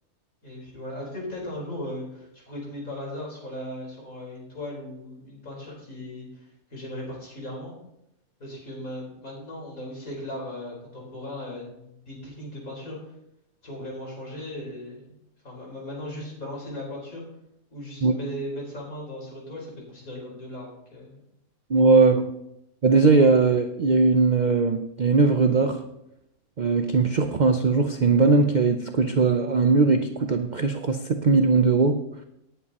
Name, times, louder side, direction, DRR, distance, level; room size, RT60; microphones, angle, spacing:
voice 1, 0.4-7.7 8.4-13.0 13.6-15.2 15.4-17.2 17.7-21.2 21.7-21.8, left 1 dB, 70° left, -3 dB, 4.7 m, -37 dB
voice 2, 21.7-22.3 22.8-25.8 26.6-32.0, right 4 dB, 55° right, 6 dB, 0.5 m, -20 dB
18.0 x 9.1 x 2.9 m, 0.83 s
omnidirectional pair, 1.5 m